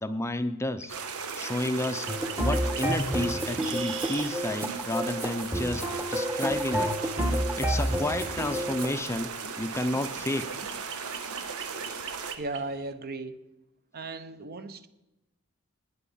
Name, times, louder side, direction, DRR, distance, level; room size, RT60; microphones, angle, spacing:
voice 1, 0.0-1.0 1.4-2.1 2.4-6.9 7.4-9.3 9.6-10.5, left 1 dB, 10° left, 10 dB, 0.5 m, -31 dB
sound 1, 0.8-12.9, right 7 dB, 60° right, 1.2 m, -45 dB
sound 2, 0.9-12.4, right 5 dB, 85° right, 1.2 m, -37 dB
sound 3, 2.1-8.9, equal, 10° right, 1.1 m, -30 dB
voice 2, 12.4-13.4 13.9-14.9, right 3 dB, 45° right, 11 dB, 0.9 m, -36 dB
18.5 x 9.3 x 5.7 m, 0.99 s
head